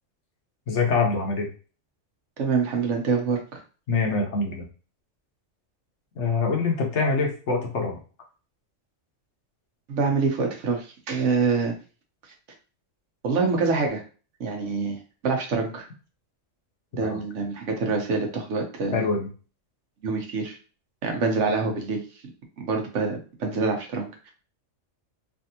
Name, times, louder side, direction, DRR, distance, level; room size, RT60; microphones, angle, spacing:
voice 1, 0.7-1.5 3.9-4.6 6.2-8.0 17.0-17.2 18.9-19.3, left 4 dB, 65° left, 1 dB, 1.1 m, -24 dB
voice 2, 2.4-3.6 9.9-11.8 13.2-14.0 14.4-15.0 15.2-15.9 17.0-19.0 20.0-20.6 21.0-22.0 22.6-24.3, right 4 dB, 75° right, 3 dB, 1.1 m, -26 dB
3.3 x 2.6 x 2.7 m, 0.37 s
omnidirectional pair, 1.3 m